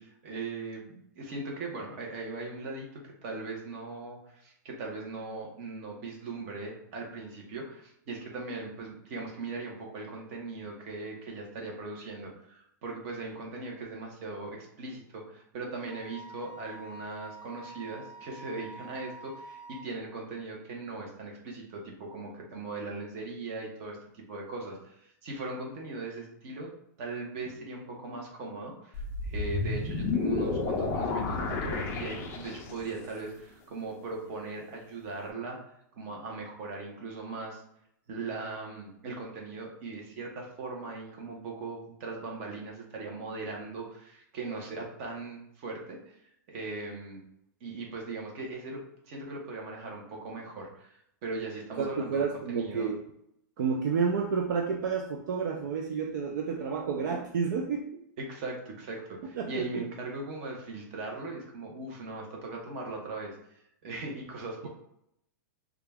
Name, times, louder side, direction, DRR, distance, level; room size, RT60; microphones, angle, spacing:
voice 1, 0.0-26.7 27.0-35.6 36.0-37.6 38.1-47.2 47.6-48.8 49.1-52.9 58.2-63.3 63.8-64.7, right 3 dB, 40° right, 0 dB, 1.0 m, -39 dB
Wind instrument woodwind instrument, 15.9-19.9, right 1 dB, ahead, 0.8 m, -47 dB
sound 1, 28.9-32.9, left 3 dB, 20° left, 0.5 m, -31 dB
voice 2, 51.8-53.0 53.6-57.9 59.2-59.8, right 5 dB, 65° right, 2 dB, 0.4 m, -30 dB
3.6 x 2.3 x 3.5 m, 0.75 s
supercardioid pair, 165°, 11 cm